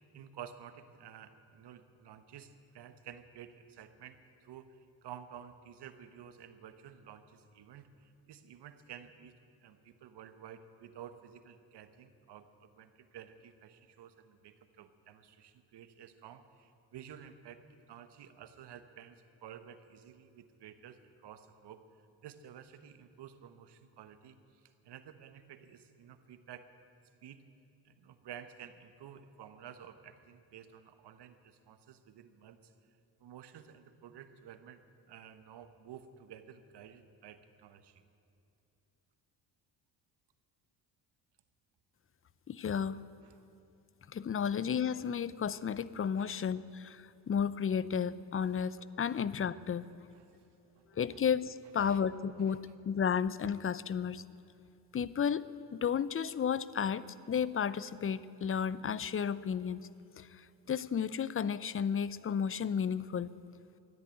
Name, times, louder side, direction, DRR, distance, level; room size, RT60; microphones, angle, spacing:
voice 1, 0.1-9.3 9.6-21.9 22.2-26.7 27.2-27.4 27.8-32.7 33.2-38.0 43.2-43.5 46.2-46.3 50.1-50.5 50.8-51.2 51.8-52.0 52.4-52.6, right 9 dB, 70° right, 10 dB, 1.2 m, -52 dB
voice 2, 42.5-43.0 44.1-49.9 51.0-54.2 54.9-59.9 60.2-63.3, left 7 dB, 30° left, 18 dB, 0.6 m, -33 dB
14.0 x 11.0 x 9.1 m, 2.8 s
supercardioid pair, 70°, 42 cm